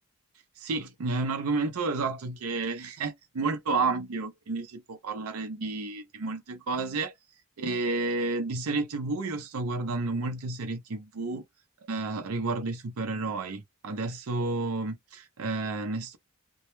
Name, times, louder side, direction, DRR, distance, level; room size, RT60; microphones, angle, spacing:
voice 1, 0.6-7.1 7.6-11.4 11.9-16.2, right 3 dB, 80° right, 0.5 m, -31 dB
2.1 x 2.1 x 3.0 m
head